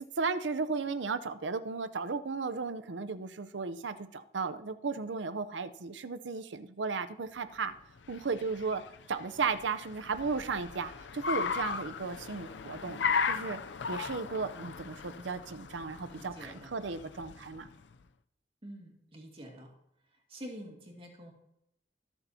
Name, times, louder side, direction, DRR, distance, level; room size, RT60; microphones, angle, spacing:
voice 1, 0.2-7.7 8.1-8.8 9.1-13.0 13.3-13.6 13.9-17.7, right 4 dB, 90° right, 11 dB, 0.7 m, -35 dB
Car, 7.7-17.9, left 5 dB, 75° left, 0.5 m, -37 dB
voice 2, 16.1-16.7 18.6-19.7 20.1-21.3, equal, 30° right, 0 dB, 2.3 m, -47 dB
20.0 x 7.0 x 2.8 m, 0.80 s
head